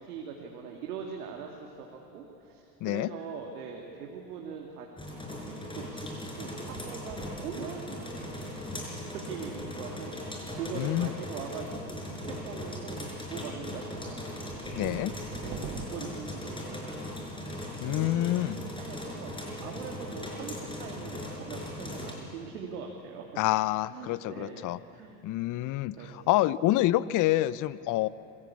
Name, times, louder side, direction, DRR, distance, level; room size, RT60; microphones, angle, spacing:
voice 1, 0.0-10.1 10.5-14.2 14.7-15.0 15.4-23.3 23.9-25.2 26.0-26.3, right 6 dB, 90° right, 1 dB, 2.4 m, -42 dB
sound 1, 5.0-22.1, left 1 dB, 10° left, 5.5 m, -39 dB
sound 2, 6.7-8.5 9.5-9.8 12.5-15.9, right 7 dB, 45° right, 3.1 m, -46 dB
voice 2, 10.7-11.1 14.7-15.1 17.8-18.6 23.4-24.8 25.2-28.1, left 15 dB, 45° left, 18 dB, 0.7 m, -27 dB
26.0 x 16.5 x 8.5 m, 2.9 s
supercardioid pair, 105°, 45 cm